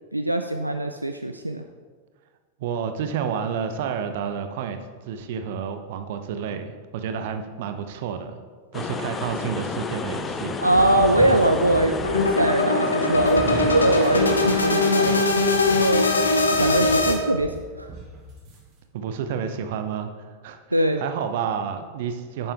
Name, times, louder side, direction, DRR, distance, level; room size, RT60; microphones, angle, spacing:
voice 1, 0.1-1.6 10.6-16.1 16.5-17.9 20.7-21.0, right 1 dB, 85° right, 6 dB, 0.4 m, -22 dB
voice 2, 2.6-8.4 8.7-10.6 18.9-22.5, right 7 dB, 50° right, 8 dB, 0.7 m, -30 dB
sound 1, 8.7-15.3, left 4 dB, 20° left, 0.6 m, -32 dB
sound 2, 10.6-12.4 13.1-18.6, right 2 dB, 35° right, 2.0 m, -36 dB
sound 3, 12.0-17.1, left 2 dB, 75° left, 0.9 m, -21 dB
9.9 x 7.2 x 3.6 m, 1.5 s
figure-of-eight pair, 90°, 0 cm